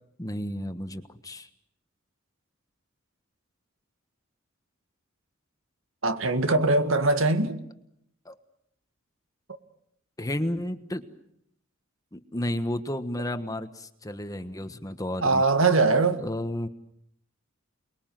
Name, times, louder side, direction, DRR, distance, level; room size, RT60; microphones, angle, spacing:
voice 1, 0.2-1.5 8.2-8.3 10.2-11.1 12.1-15.4 16.2-16.7, left 1 dB, 20° left, 1.4 m, -32 dB
voice 2, 6.0-7.6 15.2-16.2, right 3 dB, 75° right, 1.9 m, -22 dB
29.0 x 21.5 x 7.7 m
head